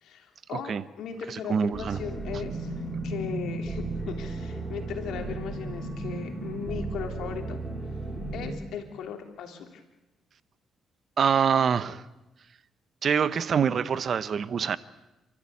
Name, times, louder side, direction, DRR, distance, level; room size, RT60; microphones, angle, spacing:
voice 1, 0.0-7.6 8.3-9.8, left 7 dB, 80° left, 3.2 m, -38 dB
voice 2, 1.3-2.0 11.2-12.0 13.0-14.8, right 7 dB, 55° right, 0.9 m, -25 dB
sound 1, 1.7-8.5, right 2 dB, 10° right, 6.5 m, -34 dB
30.0 x 13.5 x 8.6 m
cardioid pair, 90°, 0 cm